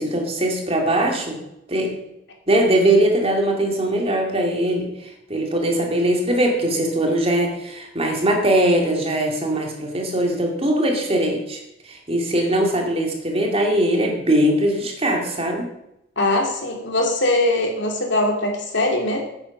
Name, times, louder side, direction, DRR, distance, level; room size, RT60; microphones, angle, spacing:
voice 1, 0.0-1.4 1.7-2.0 2.5-15.7, right 1 dB, 30° right, 2 dB, 2.4 m, -21 dB
voice 2, 16.2-19.2, left 1 dB, 60° left, 1 dB, 2.7 m, -21 dB
10.0 x 9.0 x 6.0 m, 0.84 s
head